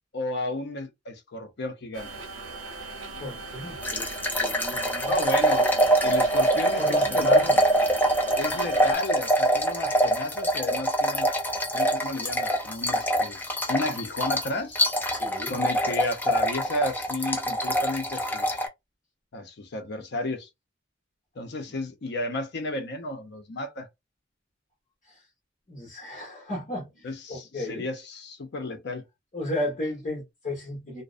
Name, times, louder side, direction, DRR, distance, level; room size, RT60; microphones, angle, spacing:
voice 1, 0.1-2.1 5.1-5.7 6.0-6.8 7.1-7.6 8.4-11.3 11.7-13.4 13.7-14.8 15.5-18.5 19.3-20.5 21.4-23.9 27.0-29.0, left 2 dB, 60° left, 0.6 m, -32 dB
sound 1, 1.9-8.9, right 3 dB, 85° right, 0.7 m, -39 dB
voice 2, 3.2-4.1 4.4-5.7 6.0-6.2 6.8-7.6 15.1-15.6 21.7-21.8 25.0-25.2 25.7-27.9 29.3-31.0, left 1 dB, 45° left, 1.1 m, -34 dB
sound 2, 3.8-18.7, right 1 dB, 10° left, 0.4 m, -24 dB
2.5 x 2.0 x 2.4 m
head